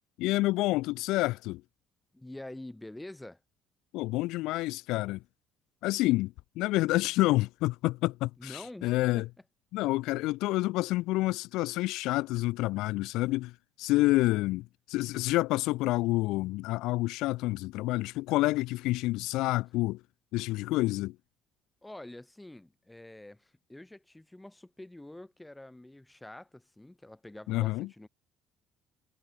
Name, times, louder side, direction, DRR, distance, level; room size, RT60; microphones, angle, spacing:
voice 1, 0.2-1.6 3.9-5.2 5.8-9.3 9.7-13.5 13.8-20.0 20.3-21.1 27.5-27.9, left 19 dB, 85° left, 0.3 m, -28 dB
voice 2, 2.1-3.4 8.4-9.3 21.8-28.1, left 1 dB, 5° left, 6.4 m, -47 dB
cardioid pair, 150°, 0 cm